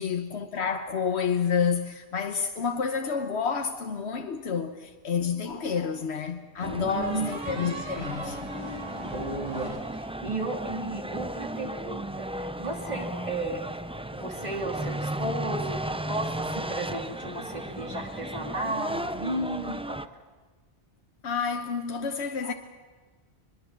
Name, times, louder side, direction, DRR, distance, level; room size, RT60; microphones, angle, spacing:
voice 1, 0.0-8.5 12.9-13.3 21.2-22.5, left 6 dB, 85° left, 1.3 m, -29 dB
sound 1, 5.2-6.1 7.0-10.5, right 1 dB, 80° right, 4.3 m, -41 dB
sound 2, 6.6-20.1, right 1 dB, 10° right, 0.4 m, -35 dB
voice 2, 6.7-7.9 9.0-13.6 14.1-20.0, right 2 dB, 40° right, 3.1 m, -34 dB
22.5 x 22.5 x 7.5 m
omnidirectional pair, 1.1 m